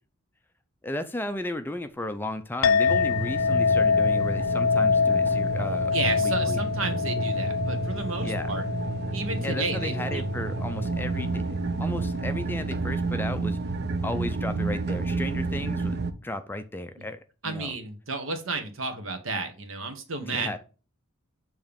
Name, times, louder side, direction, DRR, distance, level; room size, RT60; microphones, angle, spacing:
voice 1, 0.8-6.6 8.2-8.5 9.4-11.5 11.8-13.6 14.0-17.7 20.2-20.6, left 1 dB, 10° left, 0.4 m, -34 dB
Chink clink, 2.6-11.3, left 5 dB, 80° left, 0.6 m, -26 dB
sound 1, 2.9-16.1, right 3 dB, 50° right, 0.5 m, -30 dB
voice 2, 5.9-8.6 9.1-10.2 17.4-20.5, right 3 dB, 75° right, 1.2 m, -32 dB
7.0 x 3.2 x 5.1 m
head